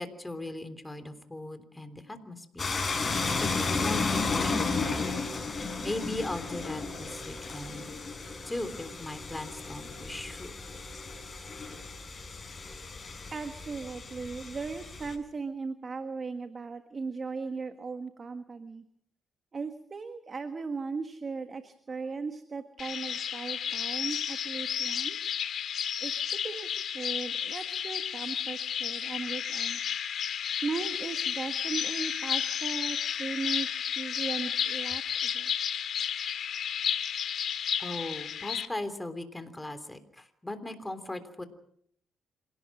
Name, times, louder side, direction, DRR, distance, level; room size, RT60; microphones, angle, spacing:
voice 1, 0.0-2.7 3.1-5.2 5.6-7.9 8.5-10.6 37.8-41.4, left 1 dB, 10° left, 9 dB, 3.4 m, -39 dB
sound 1, 2.6-15.2, left 4 dB, 30° left, 6.1 m, -33 dB
voice 2, 13.3-18.8 19.5-25.3 26.0-26.7 26.9-30.0 30.6-35.5, right 4 dB, 35° right, 8 dB, 1.6 m, -37 dB
sound 2, 22.8-38.6, left 8 dB, 65° left, 2.3 m, -32 dB
27.0 x 18.0 x 6.3 m, 0.67 s
cardioid pair, 90°, 0 cm